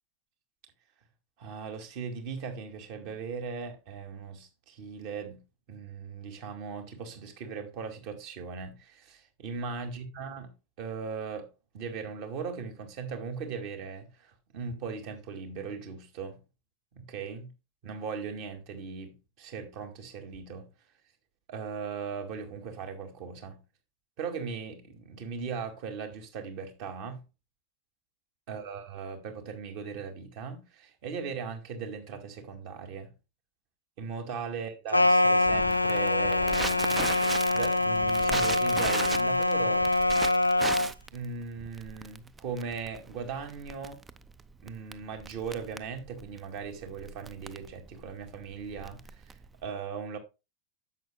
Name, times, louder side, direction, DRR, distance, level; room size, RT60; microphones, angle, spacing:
voice 1, 1.4-5.4 5.7-11.5 11.7-16.4 16.9-17.5 17.8-20.7 21.5-23.6 24.2-27.2 28.5-33.1 34.0-37.0 37.5-39.9 41.1-44.0 44.6-49.3 49.6-50.2, right 5 dB, 45° right, 2.0 m, -38 dB
sound 1, 34.9-40.9, left 2 dB, 85° left, 0.4 m, -24 dB
Crackle, 35.4-49.6, right 4 dB, 15° right, 0.5 m, -38 dB
10.5 x 7.6 x 2.2 m
figure-of-eight pair, 90°, 0 cm